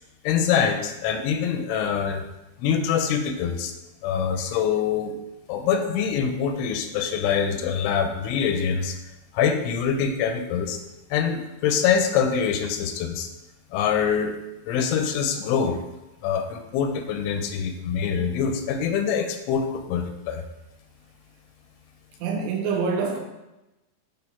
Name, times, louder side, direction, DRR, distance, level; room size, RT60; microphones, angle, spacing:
voice 1, 0.2-2.2 2.6-3.7 4.0-5.2 5.5-9.0 9.3-10.8 11.1-13.3 13.7-14.4 14.7-15.8 16.2-20.4, left 7 dB, 85° left, 6 dB, 3.0 m, -24 dB
voice 2, 22.2-23.2, right 5 dB, 80° right, 1 dB, 2.8 m, -25 dB
8.9 x 3.3 x 4.4 m, 0.97 s
omnidirectional pair, 5.4 m